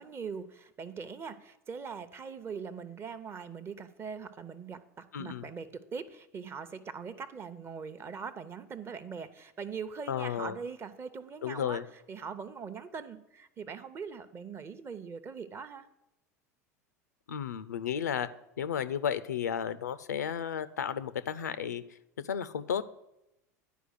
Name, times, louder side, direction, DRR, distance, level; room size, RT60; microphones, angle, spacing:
voice 1, 0.0-11.8 12.1-15.9, right 6 dB, 30° right, 11 dB, 0.7 m, -41 dB
voice 2, 5.1-5.5 10.1-10.6 11.4-11.8 17.3-18.3 18.6-21.8 22.2-22.9, left 8 dB, 80° left, 13 dB, 0.4 m, -33 dB
10.0 x 4.8 x 6.5 m, 0.87 s
hypercardioid pair, 80°, 9 cm